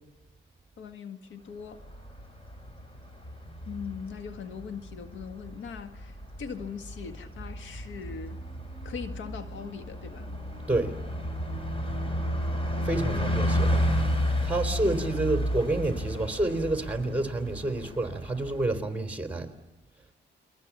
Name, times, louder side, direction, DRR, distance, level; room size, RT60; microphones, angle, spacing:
voice 1, 0.8-1.8 3.7-8.4 8.8-10.3 13.1-13.6, left 6 dB, 70° left, 9 dB, 1.8 m, -40 dB
Bus, 1.6-18.7, equal, 25° left, 4.7 m, -32 dB
voice 2, 12.8-13.9 14.4-19.5, right 2 dB, 5° right, 6 dB, 3.8 m, -29 dB
29.0 x 22.5 x 7.4 m, 0.99 s
cardioid pair, 90°, 20 cm